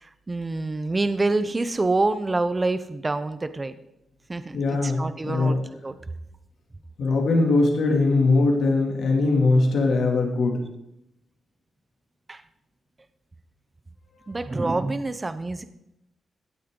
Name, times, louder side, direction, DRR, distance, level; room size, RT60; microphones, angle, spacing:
voice 1, 0.0-3.7 4.3-5.6 5.8-6.0 12.3-12.4 14.3-15.6, right 2 dB, 20° right, 12 dB, 0.7 m, -26 dB
voice 2, 4.5-5.6 7.0-10.6, left 3 dB, 75° left, 1 dB, 2.6 m, -21 dB
17.0 x 8.3 x 3.8 m, 0.84 s
cardioid pair, 120°, 0 cm